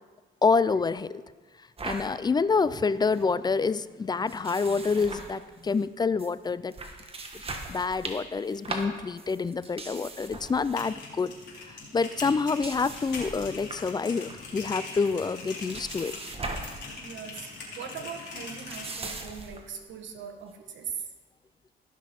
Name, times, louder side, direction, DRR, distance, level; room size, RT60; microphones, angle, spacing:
voice 1, 0.4-1.2 1.8-6.7 7.7-11.3 11.9-16.2, left 4 dB, 20° left, 16 dB, 0.3 m, -27 dB
sound 1, 1.8-2.1 2.5-2.6 2.8-3.2 4.3-5.9 6.2-6.3 6.7-11.0 11.3-11.5 12.3-13.9 14.3-14.7 15.0-16.8 17.1-17.4 18.3-19.7, right 3 dB, 30° right, 1.4 m, -40 dB
sound 2, 10.7-18.9, left 3 dB, 60° left, 3.2 m, -42 dB
voice 2, 16.6-17.5 17.8-21.1, right 7 dB, 65° right, 5 dB, 1.4 m, -40 dB
16.5 x 6.1 x 4.3 m, 1.3 s
cardioid pair, 90°, 20 cm